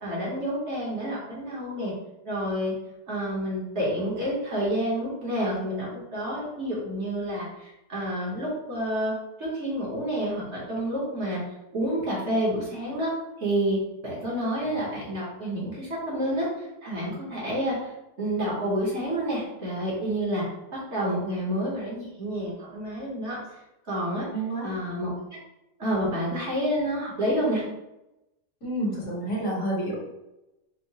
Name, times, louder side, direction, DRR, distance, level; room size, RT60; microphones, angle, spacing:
voice 1, 0.0-1.9 2.2-2.7 3.1-9.1 9.4-11.4 11.7-13.1 13.4-13.8 14.0-17.9 18.2-20.4 20.7-23.4 23.8-24.3 24.6-25.4 25.8-27.6, equal, 50° right, -6 dB, 1.2 m, -29 dB
voice 2, 24.3-24.7 28.6-30.0, right 1 dB, 60° left, -5 dB, 1.5 m, -29 dB
4.6 x 2.0 x 2.8 m, 0.93 s
omnidirectional pair, 1.6 m